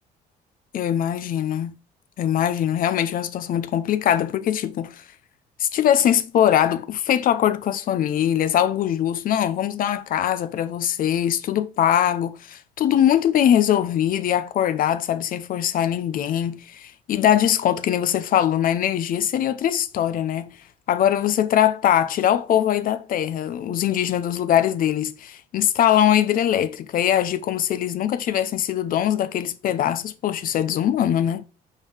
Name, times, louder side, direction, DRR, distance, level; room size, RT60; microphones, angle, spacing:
voice 1, 0.7-1.7 2.2-5.0 5.6-20.5 20.9-31.4, left 10 dB, 55° left, 0.7 m, -22 dB
5.3 x 3.6 x 5.5 m
cardioid pair, 110°, 17 cm